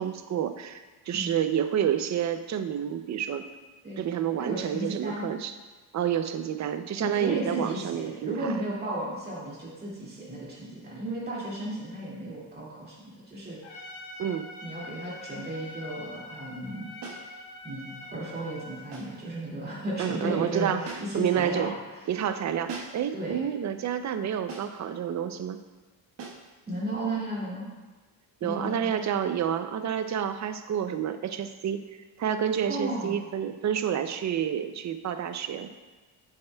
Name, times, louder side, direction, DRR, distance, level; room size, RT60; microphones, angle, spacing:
voice 1, 0.0-3.5 4.0-5.5 5.9-8.5 14.2-14.5 20.0-20.8 21.1-21.7 22.1-25.6 28.4-31.8 32.2-35.7, right 9 dB, 40° right, 10 dB, 0.5 m, -29 dB
voice 2, 4.4-5.3 7.0-13.6 14.6-16.9 17.6-21.7 23.1-23.4 26.7-27.7 28.4-28.9 32.7-33.2, right 1 dB, 20° right, -6 dB, 2.2 m, -34 dB
Trumpet, 13.6-18.9, left 1 dB, 85° left, 1.6 m, -44 dB
sound 1, 17.0-17.3 18.9-19.2 20.8-21.3 22.7-23.1 24.5-24.8 26.2-26.5, right 4 dB, 65° right, 1.4 m, -41 dB
8.6 x 7.2 x 2.2 m, 1.3 s
cardioid pair, 115°, 46 cm